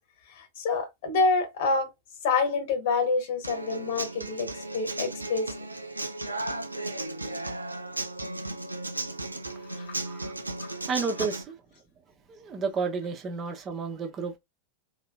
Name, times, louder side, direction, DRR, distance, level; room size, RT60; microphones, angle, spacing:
voice 1, 0.4-1.9 2.2-5.5 9.7-10.0 10.6-10.7, left 4 dB, 55° left, 1.3 m, -27 dB
Human voice / Acoustic guitar, 3.4-11.4, right 2 dB, 80° right, 0.5 m, -35 dB
voice 2, 10.9-11.5 12.3-14.4, right 5 dB, 30° right, 1.1 m, -31 dB
4.0 x 2.9 x 2.2 m
figure-of-eight pair, 90°, 0 cm